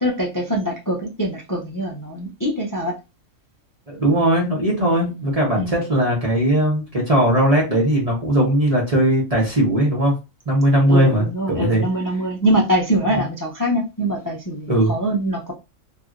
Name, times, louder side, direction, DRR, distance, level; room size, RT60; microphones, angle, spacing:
voice 1, 0.0-3.0 5.0-5.3 5.6-5.8 10.9-15.5, right 1 dB, 30° left, 0.3 m, -23 dB
voice 2, 3.9-10.1 10.5-11.8 14.7-14.9, right 1 dB, 30° right, 0.9 m, -18 dB
3.0 x 2.6 x 2.4 m
omnidirectional pair, 1.4 m